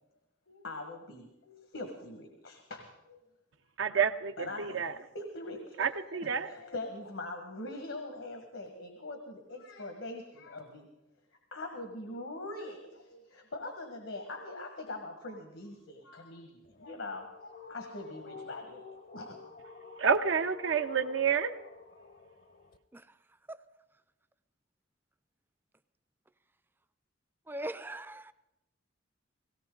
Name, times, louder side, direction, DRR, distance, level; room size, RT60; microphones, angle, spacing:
voice 1, 0.5-3.2 4.4-4.8 5.1-10.9 11.5-19.4, left 2 dB, 80° left, 3 dB, 1.6 m, -43 dB
voice 2, 3.8-5.0 5.8-6.5 20.0-21.5, right 6 dB, 75° right, 8 dB, 0.6 m, -29 dB
sound 1, 16.7-22.8, left 4 dB, 45° left, 0.7 m, -50 dB
voice 3, 27.5-28.3, right 1 dB, 10° right, 14 dB, 0.4 m, -40 dB
17.5 x 17.5 x 3.9 m, 0.92 s
head